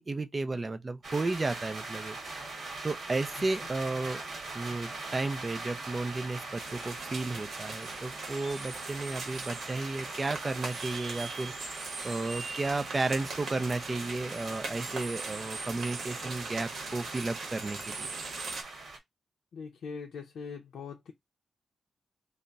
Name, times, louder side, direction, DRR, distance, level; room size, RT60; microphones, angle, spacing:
voice 1, 0.0-2.2 2.8-4.2 4.5-18.1, right 3 dB, 20° right, 0.4 m, -33 dB
sound 1, 1.0-19.0, right 3 dB, 45° right, 1.0 m, -42 dB
sound 2, 6.6-18.6, right 4 dB, 65° right, 0.8 m, -40 dB
voice 2, 19.5-21.1, left 5 dB, 75° left, 0.5 m, -41 dB
3.3 x 2.0 x 3.9 m
wide cardioid pair, 170°, 0 cm